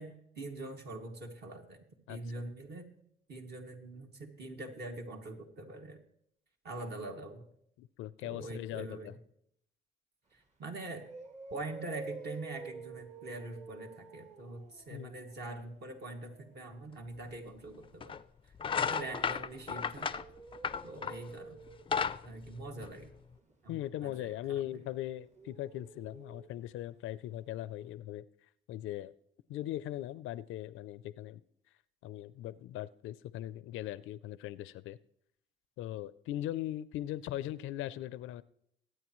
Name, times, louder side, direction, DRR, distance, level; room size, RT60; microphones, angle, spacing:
voice 1, 0.0-1.8 2.1-2.9 3.3-6.0 6.6-7.4 8.2-9.1 10.3-11.1 11.5-18.2 18.7-20.1 20.8-21.6 22.2-23.1 23.6-24.6, right 2 dB, 55° right, 2 dB, 2.1 m, -44 dB
voice 2, 2.1-2.4 7.8-9.1 14.9-15.1 18.8-18.9 23.7-28.3 28.7-29.1 29.5-31.4 32.0-35.0 35.8-38.4, left 13 dB, 90° left, 18 dB, 0.5 m, -40 dB
sound 1, 10.3-10.4 10.8-16.7 18.8-26.8 27.1-27.2 27.5-27.6, right 4 dB, 35° right, 1.5 m, -51 dB
sound 2, 17.2-17.3 18.0-18.2 18.6-21.3 21.7-23.3, left 6 dB, 25° left, 0.4 m, -34 dB
22.5 x 9.0 x 3.1 m, 0.72 s
cardioid pair, 90°, 20 cm